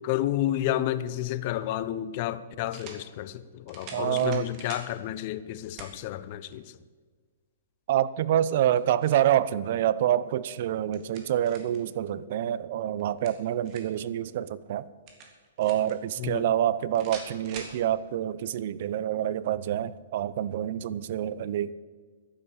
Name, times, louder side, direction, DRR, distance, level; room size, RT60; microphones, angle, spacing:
voice 1, 0.0-6.7 16.2-16.5, left 13 dB, 45° left, 0.8 m, -31 dB
sound 1, 1.4-1.5 2.7-3.0 3.7-4.9 5.8-6.0 6.5-6.6 8.5-9.3 10.6-11.8 13.0-14.0 15.1-16.0 16.9-17.8, right 4 dB, 35° right, 3.2 m, -44 dB
voice 2, 3.9-4.5 7.9-14.9 15.6-21.7, right 11 dB, 55° right, 0.7 m, -27 dB
11.5 x 11.0 x 8.4 m
hypercardioid pair, 125°, 0 cm